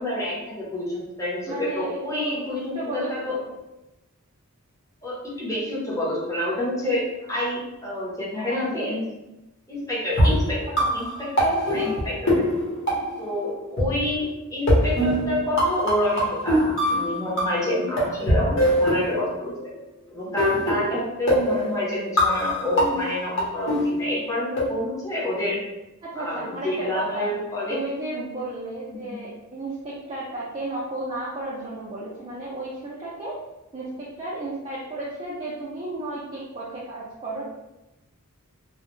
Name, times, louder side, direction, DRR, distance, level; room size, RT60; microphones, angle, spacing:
voice 1, 0.0-3.4 5.0-9.0 9.7-10.6 10.9-12.5 13.2-19.5 20.1-25.6 26.2-27.8 28.9-29.2, left 1 dB, 15° left, -6 dB, 0.7 m, -28 dB
voice 2, 1.5-2.4 2.7-3.4 8.5-8.9 13.0-13.1 26.0-27.3 27.7-33.4 33.7-37.4, right 2 dB, 25° right, -7 dB, 0.4 m, -33 dB
sound 1, 10.1-13.5 13.8-13.9 14.7-17.7 18.0-19.6 20.4-24.6, equal, 55° left, 0.9 m, -23 dB
2.1 x 2.0 x 3.0 m, 0.99 s
head